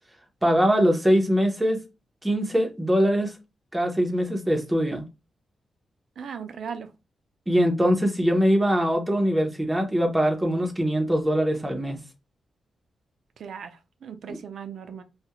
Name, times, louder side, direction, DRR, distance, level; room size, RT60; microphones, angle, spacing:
voice 1, 0.4-1.8 2.2-3.3 3.7-5.0 7.5-12.0, equal, 10° right, 0.6 m, -22 dB
voice 2, 6.2-6.9 13.4-15.0, right 7 dB, 70° right, 0.4 m, -37 dB
2.3 x 2.0 x 2.8 m
wide cardioid pair, 115°, 0 cm